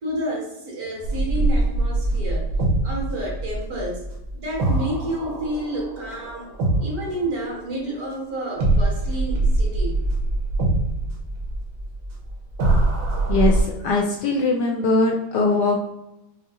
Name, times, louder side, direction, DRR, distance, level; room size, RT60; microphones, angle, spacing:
voice 1, 0.0-2.5 2.8-4.0 4.3-6.5 6.8-10.0, right 1 dB, 50° right, -3 dB, 1.7 m, -30 dB
sound 1, 1.0-8.1 8.6-13.6, right 2 dB, 85° right, 1.8 m, -23 dB
voice 2, 13.8-15.8, left 3 dB, 70° left, 1 dB, 1.0 m, -20 dB
5.8 x 2.1 x 3.5 m, 0.90 s
omnidirectional pair, 2.1 m